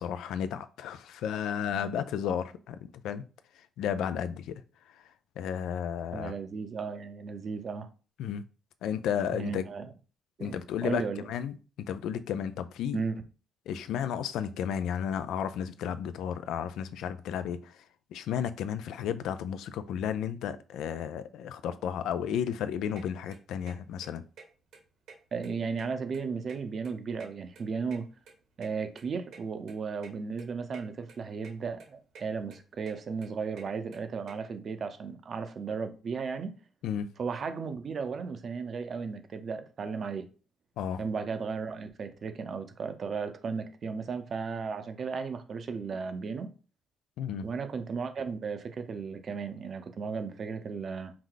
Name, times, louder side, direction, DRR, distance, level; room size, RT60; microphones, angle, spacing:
voice 1, 0.0-3.2 3.8-4.6 5.4-6.3 8.2-8.4 8.8-9.7 10.4-13.0 13.7-17.7 18.1-24.2 36.8-37.1 40.8-41.0 47.2-47.5, left 8 dB, 85° left, 0.3 m, -33 dB
voice 2, 1.7-2.0 6.1-7.9 9.3-9.9 10.4-10.6 10.8-11.3 12.9-13.2 25.3-28.1 28.6-36.5 37.2-40.3 41.0-46.5 47.4-51.1, right 5 dB, 50° right, 0.7 m, -35 dB
sound 1, 23.0-23.1 23.3-23.7 24.0-24.1 24.4-24.5 24.7-25.5 25.7-26.9 27.2-28.7 29.0-29.1 29.3-29.4 29.7-29.8 30.0-30.1 30.4-30.8 31.1-31.5 31.8-32.2 32.5-34.3, right 5 dB, 75° right, 1.4 m, -50 dB
4.7 x 2.1 x 3.9 m
cardioid pair, 90°, 0 cm